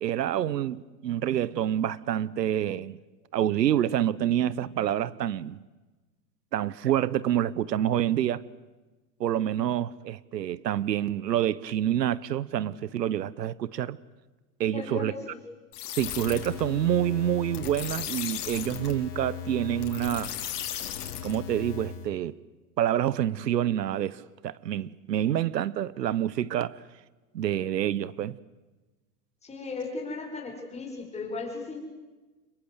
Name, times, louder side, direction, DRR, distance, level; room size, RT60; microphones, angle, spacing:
voice 1, 0.0-3.0 3.3-5.6 6.5-8.4 9.2-14.0 14.6-15.1 16.0-20.3 21.2-22.3 22.8-26.8 27.3-28.4, right 11 dB, 90° right, 1.0 m, -27 dB
voice 2, 14.7-15.4 29.4-31.8, left 3 dB, 15° left, 6.1 m, -36 dB
sound 1, 15.7-22.1, left 9 dB, 65° left, 4.4 m, -36 dB
27.5 x 22.5 x 8.2 m
hypercardioid pair, 130°, 48 cm